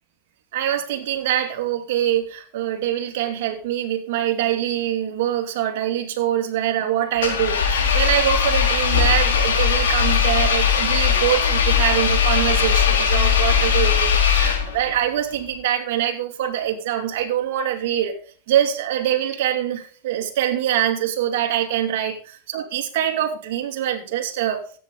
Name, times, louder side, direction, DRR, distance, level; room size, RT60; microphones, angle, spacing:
voice 1, 0.5-18.2 18.5-22.2 22.5-24.7, right 11 dB, 70° right, 3 dB, 2.5 m, -24 dB
Engine, 7.2-14.9, left 7 dB, 90° left, 3.8 m, -19 dB
14.0 x 9.3 x 3.9 m, 0.41 s
hypercardioid pair, 105°, 0 cm